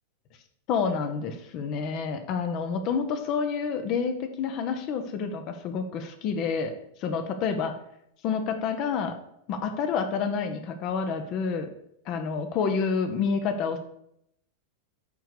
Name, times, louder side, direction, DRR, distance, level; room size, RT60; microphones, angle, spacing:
voice 1, 0.7-6.7 7.0-7.7 8.2-9.2 9.5-11.7 12.1-13.8, left 5 dB, 40° left, 7 dB, 1.3 m, -28 dB
8.8 x 4.7 x 6.6 m, 0.74 s
figure-of-eight pair, 90°, 0 cm